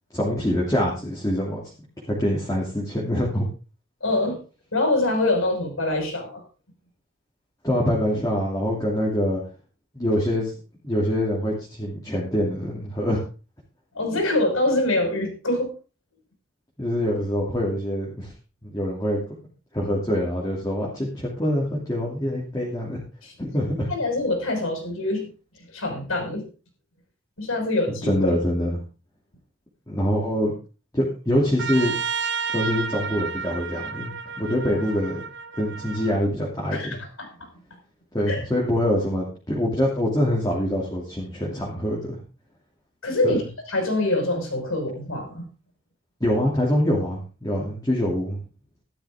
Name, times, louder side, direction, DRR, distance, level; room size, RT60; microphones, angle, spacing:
voice 1, 0.1-1.6 2.1-3.5 7.6-9.4 9.9-10.5 10.8-13.2 16.8-18.3 18.6-19.2 19.7-23.0 23.4-23.9 28.0-28.8 29.9-30.5 30.9-32.0 32.5-35.2 35.6-37.0 38.1-42.2 43.2-43.4 46.2-48.4, equal, 15° left, -5 dB, 2.8 m, -24 dB
voice 2, 4.0-4.4 4.7-6.4 13.9-15.7 23.2-23.3 23.9-25.3 25.7-26.4 27.4-28.1 36.7-37.3 38.3-38.4 43.0-43.4 43.7-45.5, left 2 dB, 75° left, 2 dB, 5.6 m, -24 dB
Trumpet, 31.6-36.1, right 5 dB, 50° right, 1.1 m, -31 dB
13.5 x 11.5 x 3.7 m, 0.34 s
head